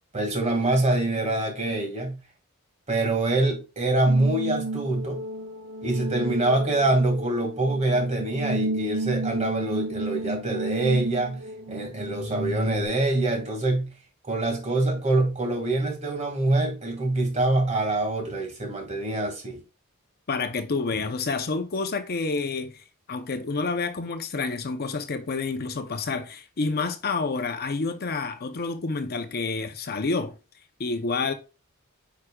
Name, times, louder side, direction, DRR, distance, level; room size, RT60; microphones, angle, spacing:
voice 1, 0.1-2.2 2.9-5.2 5.8-11.4 11.7-13.9 14.2-19.6, right 2 dB, 30° right, 2.1 m, -25 dB
sound 1, 4.0-12.9, right 1 dB, 90° right, 1.8 m, -32 dB
voice 2, 20.3-30.3 30.8-31.3, left 4 dB, 45° left, 0.6 m, -29 dB
9.3 x 4.9 x 2.3 m
head